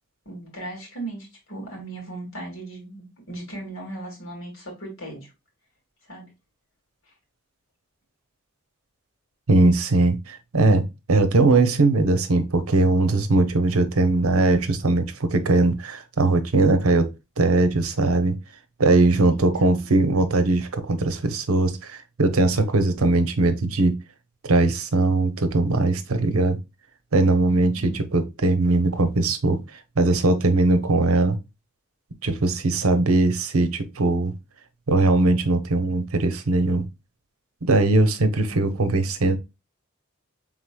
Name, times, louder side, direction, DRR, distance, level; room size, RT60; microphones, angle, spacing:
voice 1, 0.3-5.3 6.1-6.3 19.1-20.0 27.5-28.0 38.5-38.8, right 2 dB, 65° left, 2.3 m, -37 dB
voice 2, 9.5-17.1 17.4-18.4 18.8-24.0 24.4-26.6 27.1-29.6 30.0-31.4 32.2-34.3 34.9-36.8 37.6-39.4, right 2 dB, 85° right, 0.7 m, -20 dB
4.9 x 3.7 x 2.2 m
head